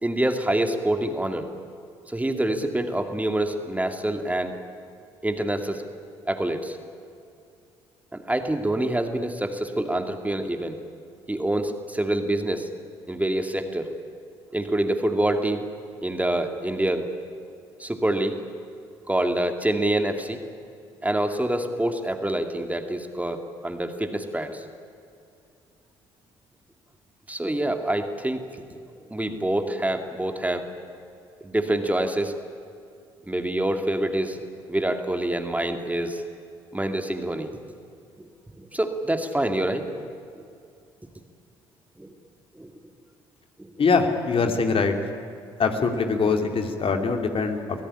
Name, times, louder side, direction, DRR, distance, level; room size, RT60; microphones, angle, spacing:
voice 1, 0.0-1.5 2.1-4.5 5.2-5.8 6.3-6.8 8.1-10.8 11.3-12.7 13.1-13.9 14.5-15.6 16.0-17.1 17.8-18.4 19.1-20.4 21.0-24.6 27.3-28.6 29.1-30.7 31.4-32.4 33.3-34.4 34.7-36.2 36.7-37.5 38.2-38.3 38.6-40.1 42.0-42.1 42.6-42.7 43.6-43.7, right 1 dB, 10° right, 6 dB, 2.3 m, -26 dB
voice 2, 43.8-45.0 45.6-47.8, left 4 dB, 45° left, 5 dB, 2.7 m, -23 dB
24.5 x 17.0 x 10.0 m, 2.5 s
hypercardioid pair, 55°, 13 cm